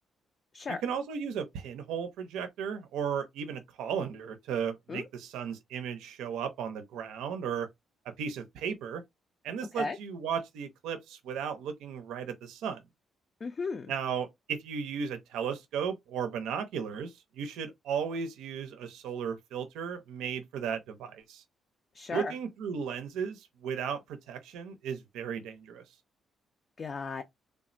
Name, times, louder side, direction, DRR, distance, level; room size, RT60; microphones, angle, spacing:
voice 1, 0.8-7.7 8.2-9.0 9.4-12.8 13.9-21.4 22.1-25.8, right 7 dB, 90° right, 0.5 m, -35 dB
voice 2, 13.4-13.9 21.9-22.3 26.8-27.2, left 4 dB, 40° left, 0.4 m, -35 dB
3.3 x 2.1 x 2.5 m
cardioid pair, 90°, 0 cm